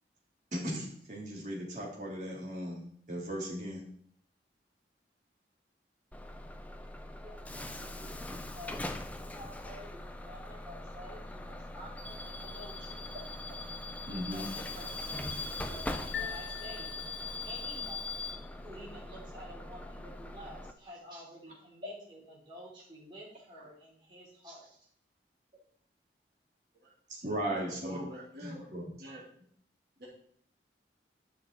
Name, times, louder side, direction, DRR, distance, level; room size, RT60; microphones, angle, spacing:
voice 1, 0.5-3.8 14.1-14.5 27.1-28.0 28.4-28.9, right 1 dB, 45° right, -3 dB, 3.1 m, -37 dB
Bus / Alarm, 6.1-20.7, left 2 dB, 10° left, 0.5 m, -41 dB
voice 2, 7.7-8.8 9.2-13.1 14.3-17.0 17.4-18.1 18.6-24.8, equal, 25° right, -6 dB, 3.4 m, -50 dB
sound 1, 16.1-17.6, left 9 dB, 85° left, 2.5 m, -42 dB
voice 3, 27.5-28.7 29.0-29.2 30.0-30.1, equal, 65° right, -5 dB, 2.9 m, -44 dB
11.0 x 5.8 x 4.6 m, 0.63 s
head